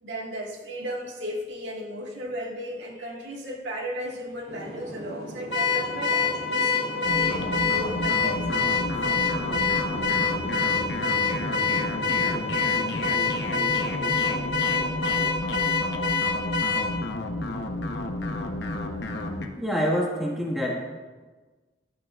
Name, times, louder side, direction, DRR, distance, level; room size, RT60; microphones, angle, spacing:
voice 1, 0.0-8.9, equal, 80° right, -1 dB, 1.9 m, -35 dB
sound 1, 4.5-15.3, right 1 dB, 55° right, 2.9 m, -39 dB
Car / Alarm, 5.5-16.9, left 5 dB, 80° left, 1.2 m, -25 dB
sound 2, 7.0-19.5, left 1 dB, 65° left, 1.0 m, -31 dB
voice 2, 19.6-20.8, equal, ahead, -3 dB, 1.7 m, -26 dB
16.5 x 12.0 x 2.5 m, 1.3 s
head